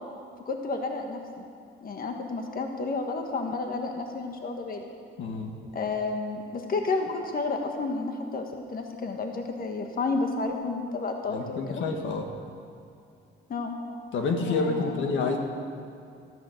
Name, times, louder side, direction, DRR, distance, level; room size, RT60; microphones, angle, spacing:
voice 1, 0.5-1.4 1.8-4.9 5.7-11.8 13.5-13.7 14.5-15.4, left 3 dB, 45° left, 3 dB, 1.5 m, -31 dB
voice 2, 5.2-5.5 11.3-12.3 14.1-15.4, left 4 dB, 75° left, 3 dB, 1.5 m, -28 dB
14.0 x 10.0 x 6.5 m, 2.4 s
cardioid pair, 90°, 20 cm